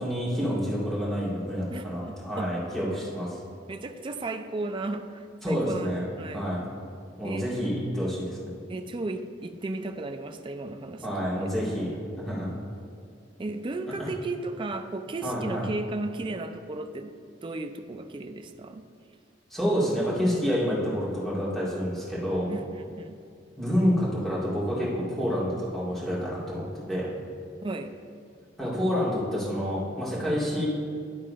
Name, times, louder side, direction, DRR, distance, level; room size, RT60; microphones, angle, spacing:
voice 1, 0.0-3.4 5.4-6.0 6.3-6.6 7.2-8.4 11.0-11.9 12.2-12.5 14.0-14.1 15.2-15.6 19.5-22.5 23.6-27.1 28.6-30.7, equal, ahead, -8 dB, 2.1 m, -28 dB
voice 2, 1.7-2.5 3.7-6.5 7.2-7.5 8.7-11.5 13.4-17.1 17.4-18.9 22.5-23.2 27.6-28.0, right 2 dB, 30° right, 7 dB, 0.4 m, -35 dB
11.0 x 3.7 x 5.0 m, 2.3 s
head